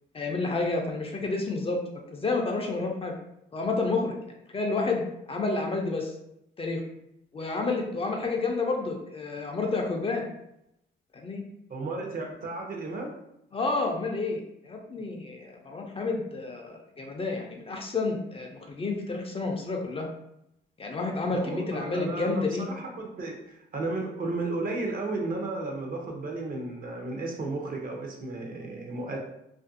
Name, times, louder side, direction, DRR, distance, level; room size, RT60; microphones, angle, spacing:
voice 1, 0.1-1.8 2.1-3.1 3.5-4.1 4.5-5.0 5.3-6.1 6.6-6.8 7.3-10.2 11.2-11.4 13.5-20.1 20.8-22.7, left 3 dB, 30° left, 1 dB, 0.4 m, -30 dB
voice 2, 11.7-13.2 21.3-29.2, right 2 dB, 45° right, 1 dB, 0.6 m, -34 dB
2.5 x 2.2 x 2.5 m, 0.80 s
cardioid pair, 90°, 20 cm